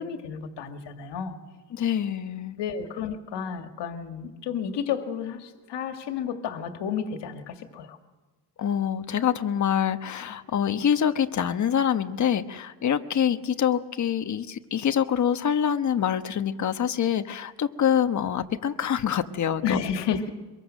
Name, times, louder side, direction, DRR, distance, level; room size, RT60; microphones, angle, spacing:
voice 1, 0.0-1.4 2.6-8.0 19.6-20.3, left 7 dB, 80° left, 6 dB, 2.2 m, -31 dB
voice 2, 1.7-2.6 8.6-19.8, left 9 dB, 45° left, 9 dB, 1.2 m, -25 dB
24.5 x 22.5 x 6.6 m, 1.2 s
cardioid pair, 140°, 41 cm